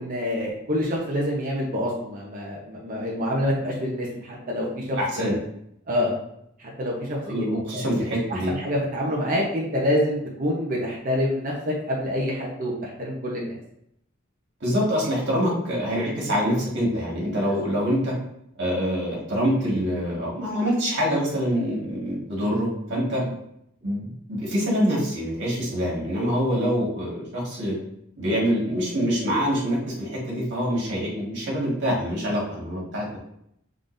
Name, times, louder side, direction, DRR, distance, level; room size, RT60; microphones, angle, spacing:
voice 1, 0.0-5.4 5.9-6.1 6.6-7.2 7.7-8.0 8.3-13.6 23.1-23.3, equal, 45° right, -3 dB, 0.9 m, -27 dB
voice 2, 5.0-5.3 7.2-8.5 14.6-18.1 18.6-23.2 23.8-27.8 28.2-33.2, equal, 60° right, -4 dB, 1.9 m, -25 dB
5.2 x 3.8 x 2.6 m, 0.75 s
head